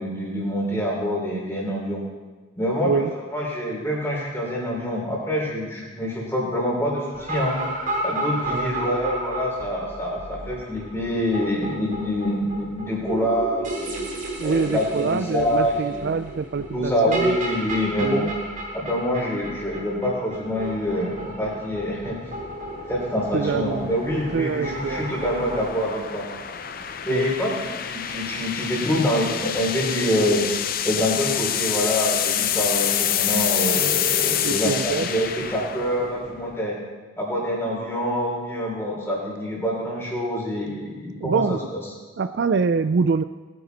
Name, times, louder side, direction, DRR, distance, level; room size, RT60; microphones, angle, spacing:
voice 1, 0.0-2.0 2.6-3.0 3.3-7.6 8.0-14.0 14.4-16.0 16.7-18.2 18.7-22.2 22.9-26.3 27.0-30.4 30.8-36.8 37.2-41.6, equal, 10° left, -4 dB, 3.4 m, -26 dB
sound 1, 7.1-25.6, right 1 dB, 40° right, 2.3 m, -33 dB
voice 2, 14.4-17.4 18.0-18.3 23.3-23.9 24.3-25.1 27.1-27.3 34.4-35.1 41.2-41.6 42.2-43.2, right 5 dB, 55° right, 11 dB, 0.4 m, -25 dB
sound 2, 20.3-36.6, left 9 dB, 45° left, 0.6 m, -28 dB
19.5 x 9.4 x 4.1 m, 1.3 s
head